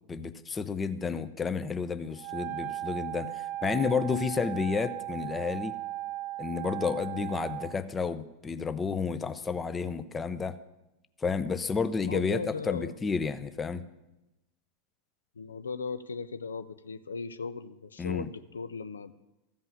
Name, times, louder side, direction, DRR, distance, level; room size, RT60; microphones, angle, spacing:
voice 1, 0.1-5.7 6.4-10.6 11.2-13.8 18.0-18.3, left 5 dB, 15° left, 12 dB, 0.6 m, -31 dB
Wind instrument woodwind instrument, 2.1-7.8, right 15 dB, 40° right, 0.6 m, -37 dB
voice 2, 12.0-12.9 15.4-19.1, left 4 dB, 70° left, 12 dB, 0.5 m, -37 dB
14.5 x 5.5 x 9.6 m, 0.98 s
figure-of-eight pair, 90°, 0 cm